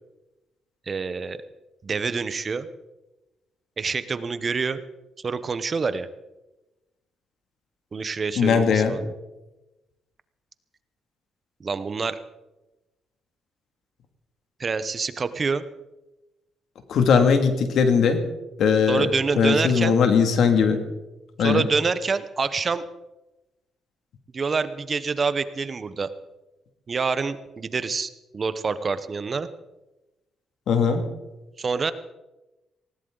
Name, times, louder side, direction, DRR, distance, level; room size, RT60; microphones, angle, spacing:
voice 1, 0.9-1.4 1.8-2.7 3.8-4.8 5.2-6.1 7.9-9.1 11.6-12.2 14.6-15.6 18.9-20.0 21.4-22.8 24.3-26.1 26.9-29.5 31.6-31.9, right 4 dB, 35° right, 13 dB, 0.9 m, -26 dB
voice 2, 8.4-8.9 16.9-18.2 18.6-19.1 19.4-20.8 21.4-21.7 30.7-31.0, left 6 dB, 70° left, 6 dB, 2.4 m, -19 dB
19.5 x 17.5 x 4.0 m, 1.0 s
cardioid pair, 90°, 0 cm